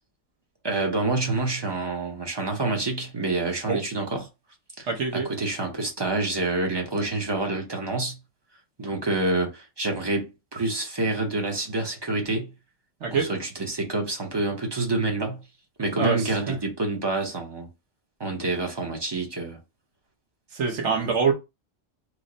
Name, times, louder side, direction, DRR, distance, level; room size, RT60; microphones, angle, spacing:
voice 1, 0.6-4.2 4.8-8.2 8.8-12.5 13.1-15.4 15.8-17.7 18.2-19.6 20.8-20.9, right 2 dB, 25° right, 0.6 m, -27 dB
voice 2, 4.9-5.3 13.0-13.3 16.0-16.6 20.5-21.3, right 5 dB, 65° right, 1.1 m, -25 dB
3.1 x 2.1 x 3.8 m
omnidirectional pair, 1.3 m